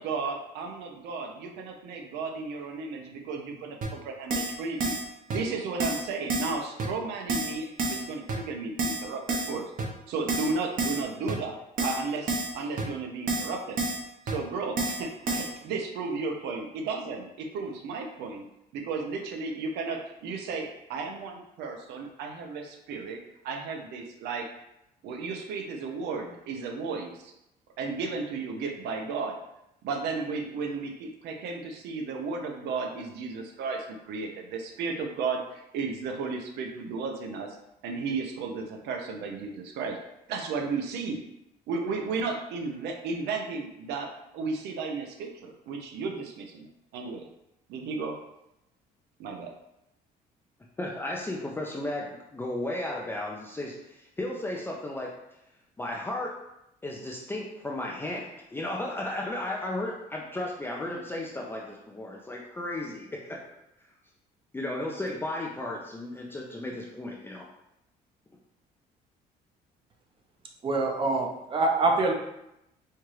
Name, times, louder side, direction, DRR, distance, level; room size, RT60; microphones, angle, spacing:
voice 1, 0.0-4.9 5.3-9.2 9.5-9.7 10.1-13.8 14.3-18.5 18.7-23.2 23.4-24.5 25.0-27.3 27.8-29.4 29.8-37.6 37.8-40.0 40.3-41.2 41.7-46.7 46.9-47.3 47.7-48.2 49.2-49.5, right 4 dB, 80° right, 3 dB, 0.6 m, -34 dB
Keyboard (musical), 3.8-3.9 4.3-4.5 4.8-5.0 5.3-5.4 5.8-6.0 6.3-6.5 6.8-6.9 7.3-7.5 7.8-8.0 8.3-8.4 8.8-9.0 9.3-9.5 9.8-9.9 10.3-10.5 10.8-11.0 11.3-11.4 11.8-12.0 12.3-12.5 12.8-12.9 13.3-13.5 13.8-14.0 14.3-14.4 14.8-15.0 15.3-15.5, right 2 dB, 55° right, 0.9 m, -29 dB
voice 2, 50.8-55.1 55.8-56.4 56.8-63.4 64.5-67.5, left 1 dB, 15° left, -2 dB, 0.5 m, -34 dB
voice 3, 70.6-72.1, right 3 dB, 30° right, 1 dB, 0.7 m, -25 dB
4.5 x 2.4 x 3.1 m, 0.85 s
cardioid pair, 110°, 17 cm